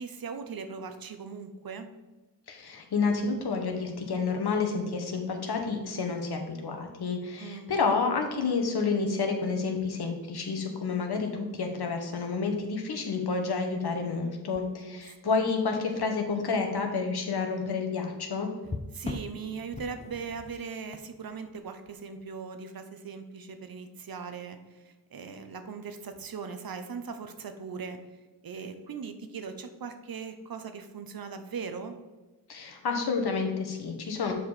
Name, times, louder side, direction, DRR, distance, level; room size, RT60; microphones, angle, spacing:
voice 1, 0.0-1.9 7.4-7.7 14.7-15.4 18.9-28.0 28.4-32.0, right 5 dB, 55° right, 8 dB, 0.8 m, -39 dB
voice 2, 2.5-18.5 32.5-34.3, left 4 dB, 60° left, 3 dB, 1.3 m, -29 dB
sound 1, 9.7-9.9 11.4-11.6 12.2-12.3 14.5-15.4 15.9-16.1 18.6-22.2 26.1-26.3, left 3 dB, 15° left, 0.5 m, -42 dB
7.0 x 4.9 x 4.2 m, 1.1 s
cardioid pair, 65°, 43 cm